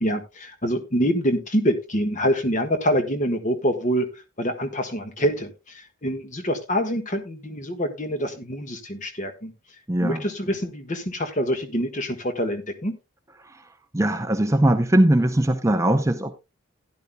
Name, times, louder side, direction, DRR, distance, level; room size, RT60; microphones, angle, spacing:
voice 1, 0.0-4.1 4.4-9.5 10.0-12.9, equal, 35° left, 1.5 m, -25 dB
voice 2, 9.9-10.2 13.4-13.6 13.9-16.3, right 1 dB, 15° right, 0.6 m, -20 dB
15.5 x 10.5 x 2.2 m
head